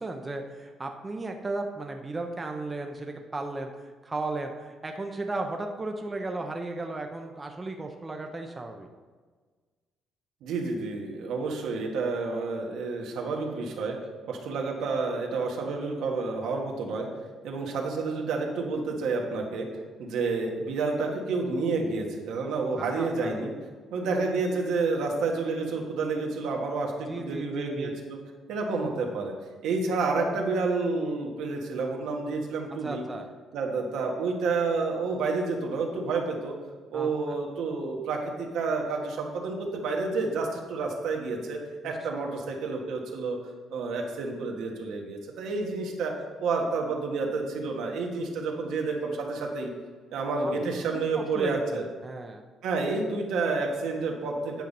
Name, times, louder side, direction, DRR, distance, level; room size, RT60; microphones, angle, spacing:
voice 1, 0.0-8.9 22.8-23.4 27.1-28.0 32.8-33.2 36.9-37.4 41.8-41.9 50.2-50.5 50.9-52.4, right 2 dB, 15° right, 3 dB, 0.6 m, -35 dB
voice 2, 10.4-14.0 14.3-17.1 17.4-19.7 20.0-23.5 23.9-28.2 28.5-29.3 29.6-33.0 33.5-36.5 36.9-41.6 41.8-43.4 43.7-46.1 46.4-49.7 50.1-51.8 52.6-54.6, right 3 dB, 80° right, 1 dB, 1.6 m, -29 dB
9.2 x 5.7 x 5.3 m, 1.4 s
cardioid pair, 140°, 0 cm